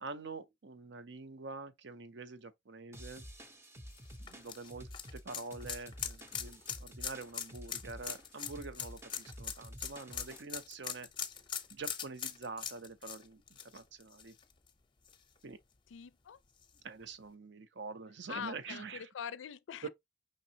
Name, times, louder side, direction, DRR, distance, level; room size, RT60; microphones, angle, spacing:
voice 1, 0.0-3.2 4.2-11.1 11.7-14.3 15.4-15.6 16.8-19.1 19.8-19.9, right 4 dB, 65° right, 0.6 m, -46 dB
sound 1, 2.9-10.4, equal, 15° right, 0.6 m, -50 dB
sound 2, 3.9-14.7 15.1-15.2 16.6-16.7, left 8 dB, 25° left, 0.6 m, -42 dB
voice 2, 15.9-16.4 18.3-19.9, left 8 dB, 80° left, 0.4 m, -43 dB
5.2 x 3.6 x 2.8 m
head